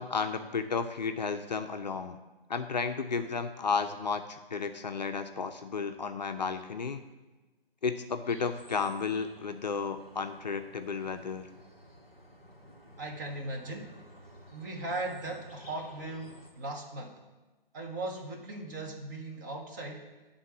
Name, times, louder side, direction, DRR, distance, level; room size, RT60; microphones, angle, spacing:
voice 1, 0.0-2.2 2.5-7.0 7.8-11.5, left 5 dB, 50° left, 7 dB, 0.5 m, -33 dB
sound 1, 8.2-16.5, equal, 80° right, 2.4 m, -54 dB
voice 2, 13.0-14.0 14.5-17.2 17.7-20.1, right 2 dB, 20° right, 0 dB, 0.8 m, -38 dB
11.0 x 3.7 x 6.0 m, 1.2 s
figure-of-eight pair, 140°, 29 cm